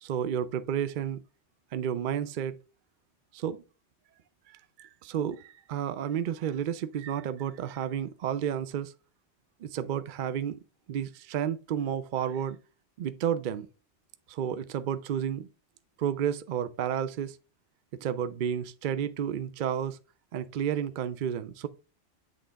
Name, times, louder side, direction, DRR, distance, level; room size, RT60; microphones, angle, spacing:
voice 1, 0.0-1.2 1.7-2.6 3.3-3.6 4.5-8.9 9.6-10.6 10.9-12.6 13.0-13.7 14.3-15.5 16.0-17.4 18.0-20.0 20.3-21.7, right 9 dB, 60° right, 0.5 m, -31 dB
8.4 x 3.7 x 3.3 m
omnidirectional pair, 1.2 m